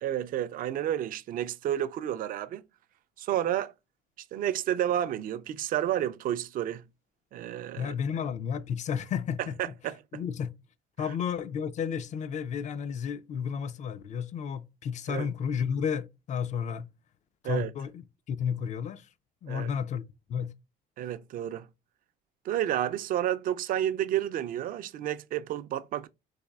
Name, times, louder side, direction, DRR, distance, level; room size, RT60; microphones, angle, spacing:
voice 1, 0.0-2.6 3.2-3.7 4.3-6.8 7.3-7.9 9.4-10.2 15.1-15.3 17.4-17.7 19.5-19.7 21.0-21.7 22.4-26.1, right 11 dB, 55° right, 0.4 m, -30 dB
voice 2, 7.8-9.5 10.1-10.5 11.0-16.9 17.4-19.1 19.4-20.0 20.3-20.5, left 7 dB, 45° left, 0.4 m, -32 dB
4.1 x 2.5 x 2.3 m
cardioid pair, 110°, 17 cm